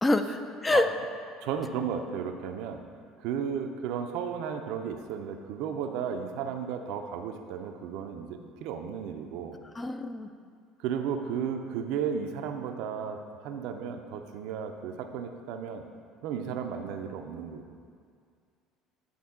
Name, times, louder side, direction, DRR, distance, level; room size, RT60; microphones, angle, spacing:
voice 1, 0.0-0.9 9.7-10.3, left 2 dB, 20° left, 8 dB, 0.4 m, -26 dB
voice 2, 1.4-2.8 3.2-9.6 10.8-15.8 16.2-17.8, right 7 dB, 70° right, 6 dB, 0.4 m, -34 dB
9.4 x 3.5 x 3.6 m, 2.2 s
hypercardioid pair, 70°, 0 cm